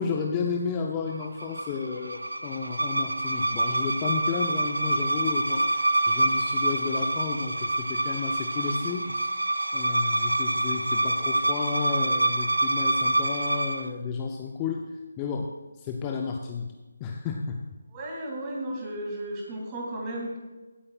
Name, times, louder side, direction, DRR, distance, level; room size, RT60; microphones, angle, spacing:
voice 1, 0.0-9.2 9.7-14.8 15.2-15.5 15.8-16.7 17.0-17.6, left 5 dB, 20° left, 1 dB, 0.7 m, -32 dB
sound 1, 1.2-13.9, right 2 dB, 85° right, 0.5 m, -26 dB
voice 2, 17.9-20.4, right 1 dB, 20° right, -2 dB, 2.7 m, -34 dB
16.5 x 8.5 x 2.5 m, 1.2 s
figure-of-eight pair, 155°, 0 cm